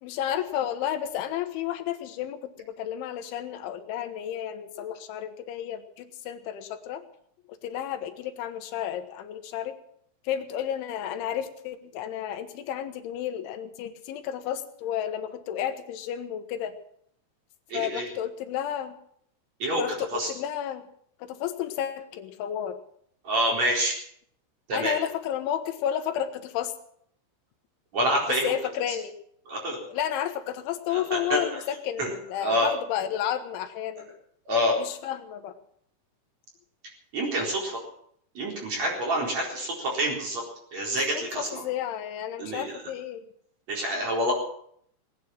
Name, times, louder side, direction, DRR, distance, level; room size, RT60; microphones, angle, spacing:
voice 1, 0.0-7.0 7.6-9.8 10.3-16.7 17.7-19.0 19.8-20.9 21.2-22.8 24.7-26.7 28.3-29.1 29.9-34.1 34.8-35.6 41.2-43.3, left 10 dB, 80° left, 8 dB, 3.6 m, -32 dB
voice 2, 17.7-18.1 19.6-19.8 20.1-20.3 23.3-23.9 24.7-24.9 27.9-28.5 28.9-29.0 29.5-29.8 30.9-31.4 32.0-32.1 32.4-32.7 34.5-34.8 37.1-37.8 38.4-40.4 40.7-41.6 42.4-42.7 43.7-44.3, equal, 35° right, -1 dB, 5.1 m, -27 dB
19.5 x 9.7 x 7.5 m, 0.67 s
omnidirectional pair, 5.4 m